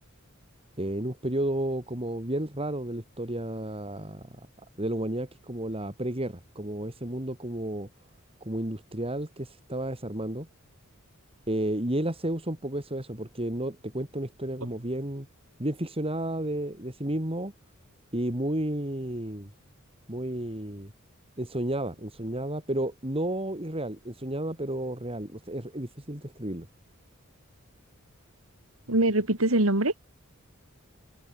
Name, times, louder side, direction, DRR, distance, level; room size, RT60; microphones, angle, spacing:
voice 1, 0.8-4.3 4.8-7.9 8.4-10.5 11.5-15.3 15.6-17.5 18.1-19.5 20.1-20.9 21.4-26.7, right 1 dB, 30° right, 4.1 m, -32 dB
voice 2, 28.9-29.9, right 1 dB, 90° right, 3.8 m, -23 dB
open air
head